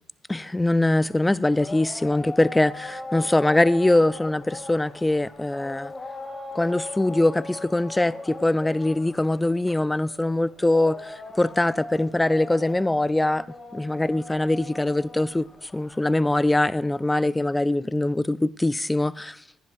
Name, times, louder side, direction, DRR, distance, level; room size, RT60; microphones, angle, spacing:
voice 1, 0.3-5.9 6.5-13.5 13.7-19.4, left 1 dB, 15° left, 0.3 m, -23 dB
sound 1, 0.8-17.2, left 3 dB, 30° left, 2.0 m, -40 dB
16.0 x 10.5 x 2.3 m
hypercardioid pair, 55°, 0 cm